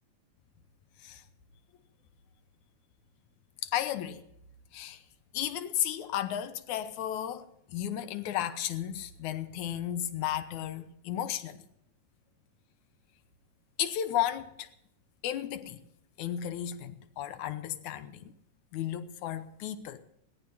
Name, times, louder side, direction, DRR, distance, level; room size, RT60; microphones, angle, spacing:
voice 1, 3.6-4.2 4.7-5.0 5.3-11.7 13.8-14.7 15.2-15.8 16.2-18.3 18.7-20.0, left 11 dB, 75° left, 2.4 m, -34 dB
20.5 x 18.0 x 2.8 m
omnidirectional pair, 3.4 m